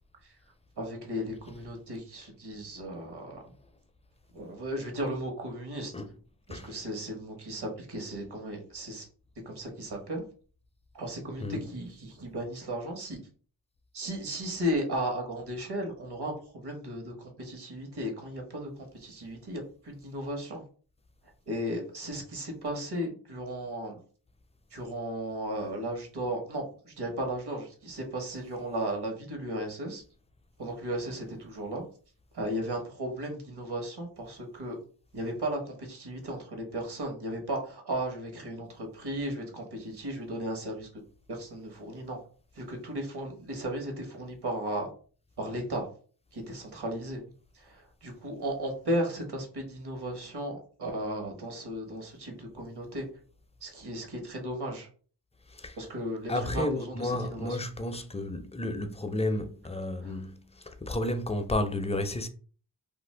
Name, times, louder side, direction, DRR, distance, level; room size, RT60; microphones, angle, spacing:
voice 1, 0.8-3.5 4.3-5.9 6.5-9.1 9.4-10.2 10.9-13.2 13.9-20.6 21.5-24.0 24.7-30.0 30.6-31.8 32.3-34.8 35.1-40.9 41.3-42.2 42.5-44.9 45.4-45.9 46.3-47.2 47.5-53.1 53.6-54.9 55.8-57.6 60.0-60.2, right 1 dB, 65° right, 1.2 m, -35 dB
voice 2, 56.3-60.4 60.8-62.3, left 1 dB, 15° left, 0.4 m, -31 dB
2.5 x 2.4 x 3.2 m
cardioid pair, 50°, 43 cm